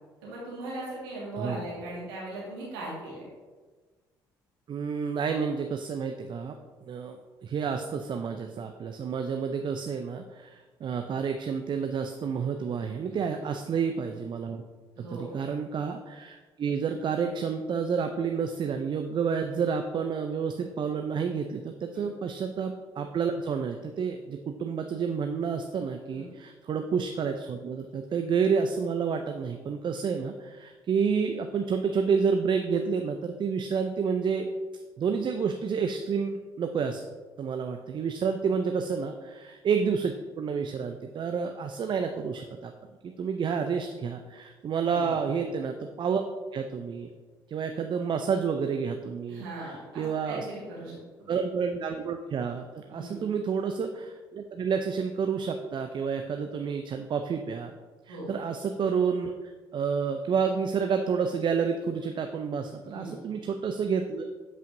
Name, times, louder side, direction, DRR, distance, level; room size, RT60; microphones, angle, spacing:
voice 1, 0.2-3.2 13.0-13.5 14.9-15.4 21.9-22.0 26.1-26.3 38.4-38.6 44.8-45.2 49.3-51.3 52.9-53.2 58.1-58.3 62.9-63.2, right 1 dB, 80° right, -5 dB, 1.8 m, -39 dB
voice 2, 1.4-1.7 4.7-6.5 6.8-14.6 15.0-34.5 35.0-37.0 37.4-42.7 43.0-46.2 46.5-47.1 47.5-50.4 51.3-57.7 58.1-64.3, right 6 dB, 40° right, 6 dB, 0.4 m, -29 dB
7.8 x 5.1 x 2.6 m, 1.3 s
hypercardioid pair, 50°, 12 cm